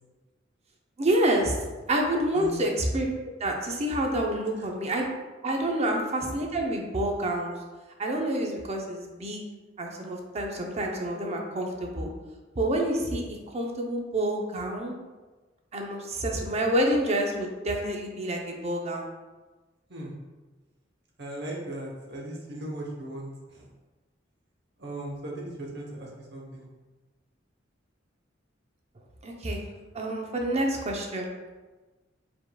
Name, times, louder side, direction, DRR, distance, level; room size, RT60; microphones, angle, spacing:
voice 1, 1.0-1.6 1.9-5.1 5.4-7.5 8.0-9.4 9.8-12.1 12.6-14.9 15.7-19.1 29.2-29.6 29.9-31.3, right 1 dB, 35° right, 1 dB, 0.6 m, -28 dB
voice 2, 21.2-23.7 24.8-26.7, right 1 dB, 60° right, -2 dB, 0.9 m, -38 dB
4.8 x 3.6 x 2.3 m, 1.2 s
head